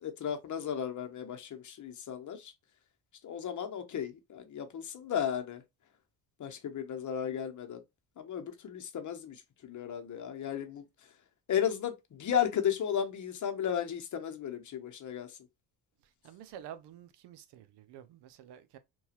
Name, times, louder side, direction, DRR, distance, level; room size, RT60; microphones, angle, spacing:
voice 1, 0.0-2.5 3.2-5.6 6.4-7.8 8.2-11.1 11.5-15.4, left 9 dB, 45° left, 0.8 m, -34 dB
voice 2, 16.2-18.8, right 10 dB, 75° right, 0.6 m, -49 dB
2.9 x 2.3 x 2.8 m
cardioid pair, 80°, 41 cm